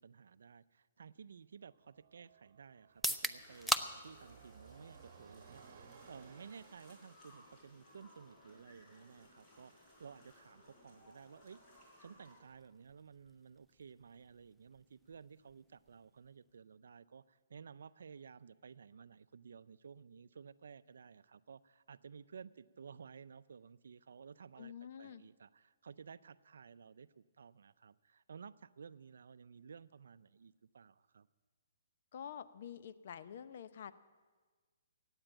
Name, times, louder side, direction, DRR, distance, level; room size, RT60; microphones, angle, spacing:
voice 1, 0.0-11.6 12.0-31.3, right 6 dB, 75° right, 16 dB, 0.5 m, -55 dB
sound 1, 1.7-7.2, right 6 dB, 55° right, 1.2 m, -60 dB
sound 2, 2.9-16.7, equal, ahead, 0.5 m, -46 dB
sound 3, 3.4-12.4, left 1 dB, 30° left, 4.9 m, -62 dB
voice 2, 24.6-25.2 32.1-33.9, left 8 dB, 55° left, 13 dB, 0.7 m, -48 dB
14.5 x 8.9 x 8.8 m, 1.4 s
hypercardioid pair, 145°, 0 cm